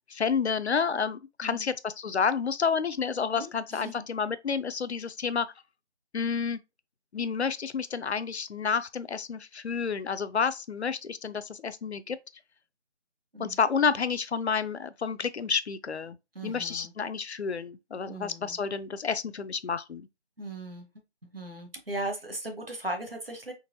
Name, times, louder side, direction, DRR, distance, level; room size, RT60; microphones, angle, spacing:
voice 1, 0.1-5.5 6.1-6.6 7.1-12.2 13.4-16.2 16.4-20.1, left 6 dB, 70° left, 0.5 m, -30 dB
voice 2, 3.4-4.1 13.3-13.6 16.3-16.9 18.1-18.6 20.4-20.9 21.3-23.5, right 1 dB, 55° right, 1.0 m, -38 dB
3.8 x 3.0 x 2.6 m
figure-of-eight pair, 180°, 35 cm